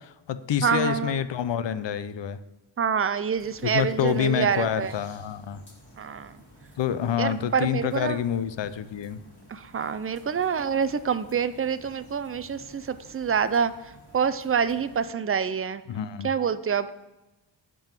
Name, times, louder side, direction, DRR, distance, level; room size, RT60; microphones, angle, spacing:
voice 1, 0.0-2.4 3.6-5.6 6.8-9.2 15.9-16.3, left 9 dB, 65° left, 13 dB, 0.6 m, -27 dB
voice 2, 0.6-1.2 2.8-4.9 6.0-6.4 7.2-8.2 9.5-13.7 14.1-15.8 16.2-16.9, right 7 dB, 30° right, 13 dB, 0.4 m, -26 dB
sound 1, 3.3-15.1, equal, 25° left, 2.6 m, -52 dB
10.5 x 3.8 x 7.2 m, 1.0 s
wide cardioid pair, 135°, 46 cm